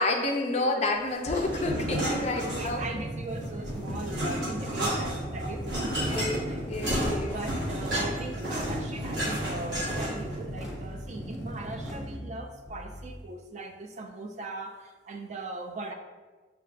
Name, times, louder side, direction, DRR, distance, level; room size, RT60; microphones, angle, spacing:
voice 1, 0.0-2.8 6.0-7.4, left 2 dB, 35° left, 3 dB, 0.4 m, -29 dB
sound 1, 1.3-3.0 3.3-10.3, equal, 65° right, 1.2 m, -32 dB
sound 2, 1.4-13.2, equal, 20° right, 1.1 m, -43 dB
sound 3, 2.4-12.2, right 1 dB, 5° right, 0.7 m, -39 dB
voice 2, 2.4-5.9 6.4-6.6 7.3-15.9, right 2 dB, 40° right, 5 dB, 0.3 m, -39 dB
6.6 x 2.2 x 2.4 m, 1.3 s
head